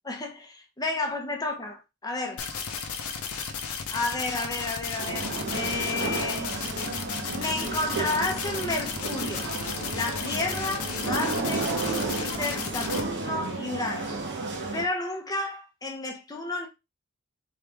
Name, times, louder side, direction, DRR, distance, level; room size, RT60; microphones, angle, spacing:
voice 1, 0.0-2.4 3.9-6.6 7.3-9.5 9.9-14.1 14.7-16.7, left 2 dB, 15° left, 0.8 m, -32 dB
sound 1, 2.4-13.0, left 6 dB, 70° left, 0.7 m, -34 dB
sound 2, 5.0-14.8, right 3 dB, 55° right, 1.1 m, -32 dB
3.6 x 3.3 x 3.5 m
head